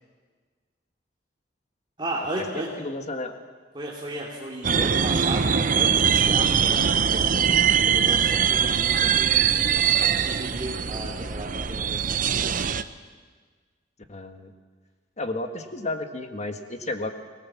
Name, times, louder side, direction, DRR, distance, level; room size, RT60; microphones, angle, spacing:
voice 1, 2.0-2.7 3.7-12.7, right 1 dB, 25° right, -3 dB, 2.7 m, -35 dB
voice 2, 2.6-3.3 14.1-14.5 15.2-17.1, left 2 dB, 40° left, 6 dB, 1.7 m, -32 dB
sound 1, 4.6-12.8, right 7 dB, 45° right, 0.7 m, -22 dB
24.0 x 18.5 x 7.4 m, 1.5 s
head